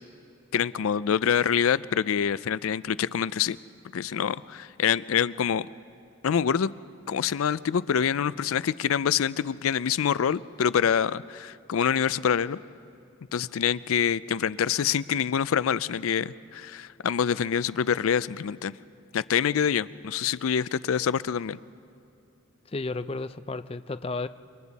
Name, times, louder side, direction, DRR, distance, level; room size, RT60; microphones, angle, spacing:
voice 1, 0.5-3.6 3.9-5.7 6.2-6.7 7.1-12.6 13.3-18.8 19.1-21.6, left 8 dB, 90° left, 18 dB, 0.4 m, -26 dB
voice 2, 22.7-24.3, left 3 dB, 25° left, 12 dB, 0.4 m, -32 dB
28.0 x 24.0 x 4.1 m, 2.6 s
head